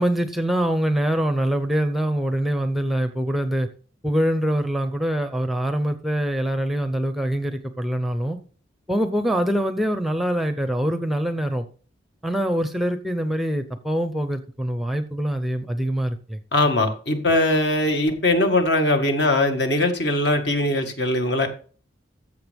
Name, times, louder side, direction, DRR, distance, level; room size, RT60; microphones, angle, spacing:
voice 1, 0.0-3.7 4.0-8.4 8.9-11.7 12.2-16.4 16.7-16.8, right 1 dB, ahead, 0.6 m, -24 dB
voice 2, 16.5-21.5, left 1 dB, 60° left, 1.8 m, -21 dB
14.5 x 6.8 x 3.5 m
head